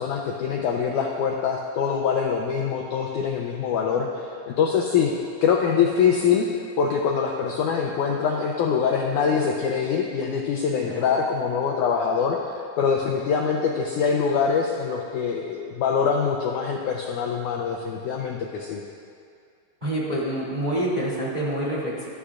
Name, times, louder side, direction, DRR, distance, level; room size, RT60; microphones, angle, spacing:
voice 1, 0.0-5.1 5.4-6.5 6.8-18.8, left 6 dB, 85° left, 0 dB, 1.7 m, -24 dB
voice 2, 19.8-22.1, right 1 dB, 15° right, -7 dB, 2.0 m, -27 dB
21.0 x 13.0 x 2.5 m, 2.3 s
omnidirectional pair, 4.5 m